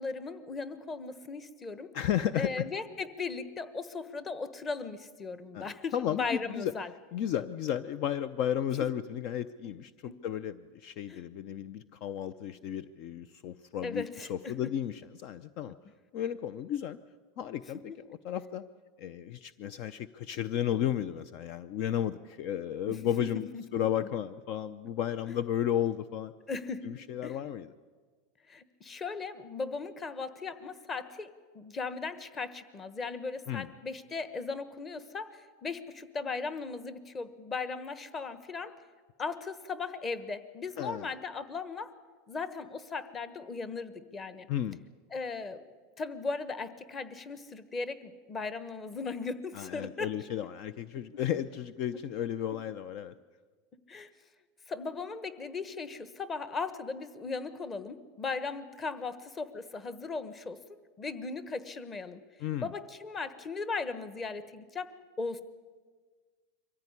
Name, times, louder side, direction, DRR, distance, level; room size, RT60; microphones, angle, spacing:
voice 1, 0.0-1.9 2.3-6.9 9.6-9.7 10.1-10.2 11.1-11.2 13.8-14.5 17.9-18.0 22.9-23.8 26.5-26.9 27.2-27.4 28.5-31.3 31.5-38.7 39.2-41.9 42.3-44.5 45.1-45.6 46.0-50.1 53.9-54.1 54.7-60.6 61.0-62.2 62.6-65.4, left 4 dB, 20° left, 13 dB, 1.2 m, -37 dB
voice 2, 1.9-2.7 5.5-6.7 7.1-15.7 16.1-17.0 17.4-17.9 18.2-18.6 19.0-26.3 26.8-27.7 33.5-33.7 40.8-41.1 44.5-44.8 49.5-53.1 62.4-62.7, left 10 dB, 50° left, 16 dB, 0.6 m, -33 dB
23.5 x 15.0 x 9.8 m, 1.5 s
supercardioid pair, 150°, 0 cm